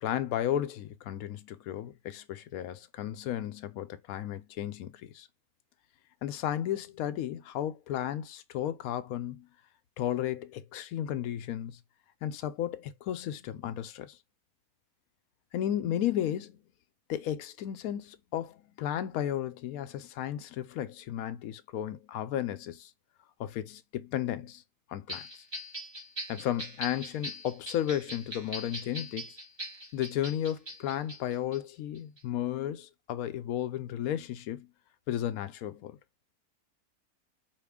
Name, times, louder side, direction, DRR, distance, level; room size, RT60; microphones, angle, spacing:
voice 1, 0.0-5.3 6.2-9.5 10.0-11.8 12.2-14.2 15.5-16.6 17.1-22.9 23.4-24.6 24.9-25.4 26.3-29.4 29.9-34.7 35.1-36.0, left 11 dB, 70° left, 1.0 m, -34 dB
sound 1, 25.1-31.6 32.0-32.2, equal, 25° right, 0.7 m, -41 dB
4.7 x 2.5 x 3.5 m
omnidirectional pair, 1.6 m